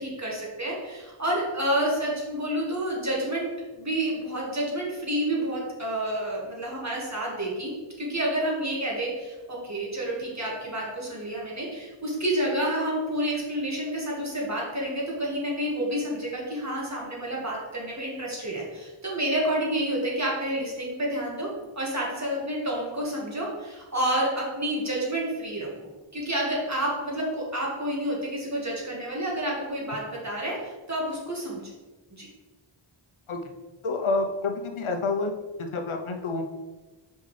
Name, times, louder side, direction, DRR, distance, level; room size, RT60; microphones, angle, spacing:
voice 1, 0.0-3.5 3.7-7.7 8.0-21.5 21.8-25.7 26.1-31.7 32.1-32.3, right 1 dB, 35° right, -4 dB, 1.9 m, -29 dB
voice 2, 33.8-35.3 35.6-36.4, left 3 dB, 80° left, 4 dB, 0.8 m, -28 dB
5.4 x 5.3 x 3.3 m, 1.2 s
wide cardioid pair, 65°, 48 cm